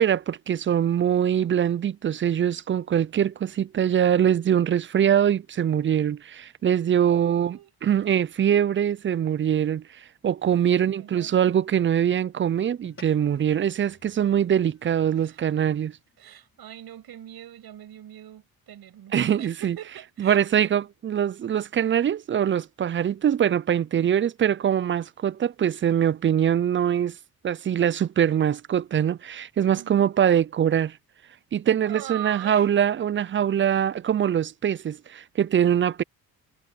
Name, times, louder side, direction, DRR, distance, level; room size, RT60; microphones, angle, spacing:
voice 1, 0.0-16.0 19.1-19.8 20.2-27.2 27.4-31.0 31.5-36.0, right 9 dB, 35° right, 0.4 m, -23 dB
voice 2, 7.0-7.7 10.7-11.4 15.2-15.4 16.2-20.7 29.8-30.2 31.8-32.7, right 11 dB, 75° right, 7.2 m, -43 dB
sound 1, 12.8-17.5, left 4 dB, 30° left, 4.7 m, -56 dB
cardioid pair, 85°, 37 cm